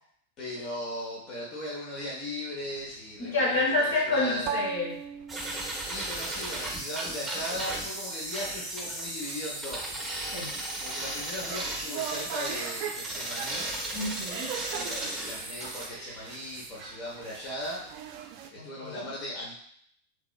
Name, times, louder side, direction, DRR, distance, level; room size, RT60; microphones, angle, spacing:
voice 1, 0.4-4.5 5.6-10.0 10.8-13.7 14.7-17.8 18.5-19.5, left 1 dB, 35° left, -6 dB, 0.9 m, -38 dB
sound 1, 2.6-18.5, right 8 dB, 45° right, 0.3 m, -41 dB
voice 2, 3.2-4.9 10.3-10.5 13.9-14.6 18.6-19.0, left 2 dB, 60° left, -5 dB, 1.3 m, -28 dB
sound 2, 5.3-15.9, right 1 dB, 10° right, 0.8 m, -35 dB
3.0 x 2.9 x 2.3 m, 0.64 s
figure-of-eight pair, 90°, 0 cm